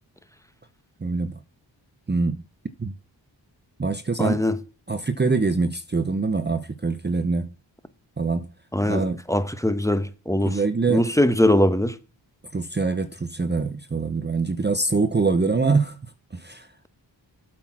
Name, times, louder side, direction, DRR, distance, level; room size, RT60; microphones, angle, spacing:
voice 1, 1.0-1.4 2.1-2.4 2.8-2.9 3.8-4.4 4.9-7.5 8.2-8.5 8.8-9.2 10.4-11.0 12.5-16.0 16.3-16.7, right 4 dB, 25° right, 0.7 m, -24 dB
voice 2, 4.2-4.6 8.7-10.6 10.9-11.9, left 1 dB, 5° left, 1.0 m, -21 dB
8.3 x 6.1 x 6.0 m
cardioid pair, 50°, 46 cm